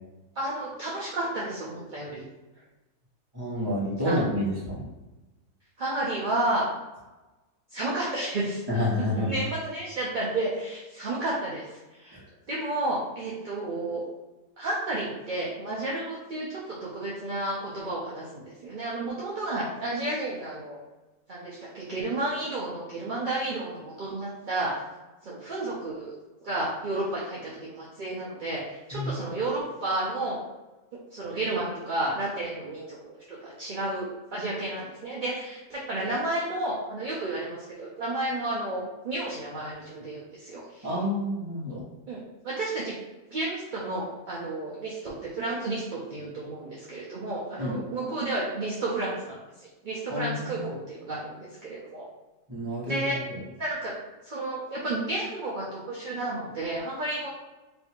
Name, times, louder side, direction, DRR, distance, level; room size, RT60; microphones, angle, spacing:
voice 1, 0.4-2.2 3.6-3.7 4.0-4.4 5.8-6.6 7.7-8.8 9.2-12.2 12.5-14.1 14.6-20.8 21.3-24.7 25.2-26.1 26.4-30.4 31.1-40.9 42.1-42.9 43.3-52.0 52.9-53.2 53.6-53.9 54.2-57.3, right 2 dB, 45° right, -6 dB, 0.7 m, -32 dB
voice 2, 3.3-4.8 8.7-9.4 12.1-12.2 28.9-29.1 40.8-41.8 47.6-47.8 50.1-50.7 52.5-53.4, left 1 dB, 15° right, -7 dB, 1.3 m, -29 dB
3.3 x 2.7 x 4.3 m, 1.1 s
omnidirectional pair, 1.6 m